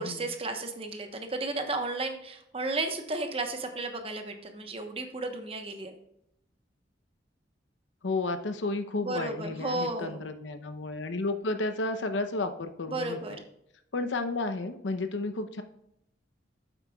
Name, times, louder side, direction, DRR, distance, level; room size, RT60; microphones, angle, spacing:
voice 1, 0.0-5.9 9.0-10.2 12.9-13.4, right 2 dB, 30° right, 5 dB, 1.0 m, -33 dB
voice 2, 8.0-13.4 13.9-15.6, left 2 dB, 90° left, 9 dB, 0.7 m, -32 dB
9.0 x 7.8 x 2.3 m, 0.77 s
head